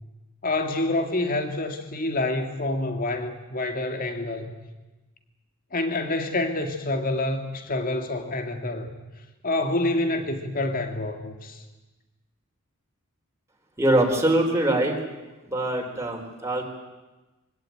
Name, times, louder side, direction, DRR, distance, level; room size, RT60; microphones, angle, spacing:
voice 1, 0.4-4.5 5.7-8.9 9.4-11.6, left 2 dB, 40° left, 6 dB, 2.2 m, -27 dB
voice 2, 13.8-15.0 15.5-16.6, right 1 dB, 15° right, 1 dB, 3.9 m, -23 dB
24.0 x 16.5 x 9.2 m, 1.1 s
head